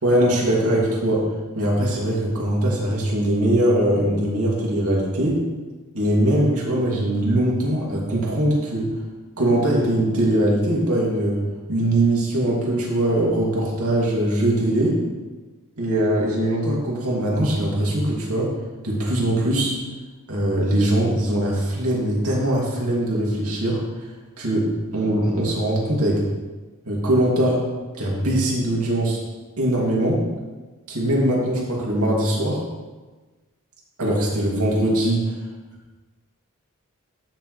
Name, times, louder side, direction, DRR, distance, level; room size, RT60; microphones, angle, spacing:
voice 1, 0.0-1.3 1.5-5.4 5.9-8.9 9.4-11.4 11.7-15.0 15.8-18.5 18.8-19.7 20.3-23.8 24.4-26.2 26.8-27.6 28.0-29.2 29.6-30.2 30.9-32.6 34.0-35.4, right 1 dB, 75° right, -4 dB, 2.6 m, -21 dB
13.0 x 6.6 x 3.3 m, 1.3 s
head